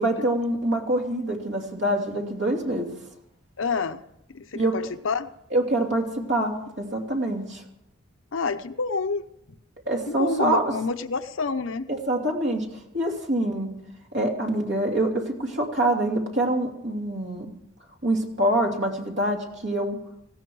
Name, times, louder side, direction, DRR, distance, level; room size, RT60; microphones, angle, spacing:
voice 1, 0.0-2.9 4.5-4.7 5.5-7.6 9.9-10.7 11.9-12.7 12.9-13.7 14.1-17.5 18.0-20.0, right 1 dB, 55° right, 1 dB, 2.9 m, -25 dB
voice 2, 3.6-4.0 4.3-5.3 8.3-9.2 10.1-11.8, left 4 dB, 75° left, 10 dB, 0.8 m, -28 dB
18.5 x 16.5 x 4.8 m, 0.81 s
head